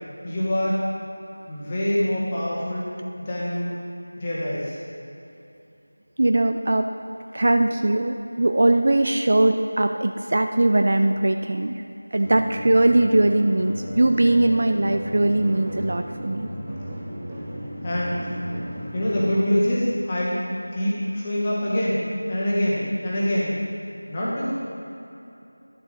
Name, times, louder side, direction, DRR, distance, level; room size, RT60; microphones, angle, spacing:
voice 1, 0.2-0.8 1.5-2.8 3.2-3.8 4.2-4.8 17.8-18.2 18.9-20.4 20.7-23.5 24.1-24.5, equal, 20° left, -7 dB, 1.3 m, -25 dB
voice 2, 6.2-6.9 7.3-11.8 12.1-16.5, right 2 dB, 40° right, 6 dB, 0.3 m, -20 dB
sound 1, 12.2-19.4, equal, 10° right, 0.8 m, -35 dB
11.0 x 7.3 x 3.9 m, 2.9 s
figure-of-eight pair, 170°, 0 cm